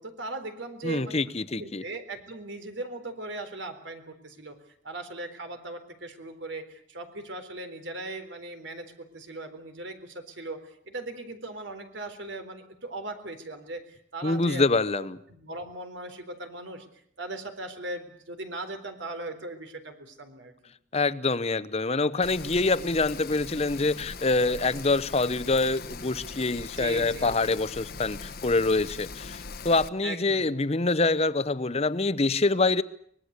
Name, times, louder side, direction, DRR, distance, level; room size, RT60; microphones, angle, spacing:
voice 1, 0.0-1.2 1.5-4.6 4.8-16.9 17.2-20.5 26.8-27.4 30.0-30.5, right 2 dB, 75° right, 4.0 m, -39 dB
voice 2, 0.8-1.8 14.2-15.2 20.9-32.8, left 3 dB, 35° left, 0.9 m, -25 dB
Rain, 22.2-29.9, left 4 dB, 55° left, 1.1 m, -41 dB
24.5 x 20.0 x 8.3 m
head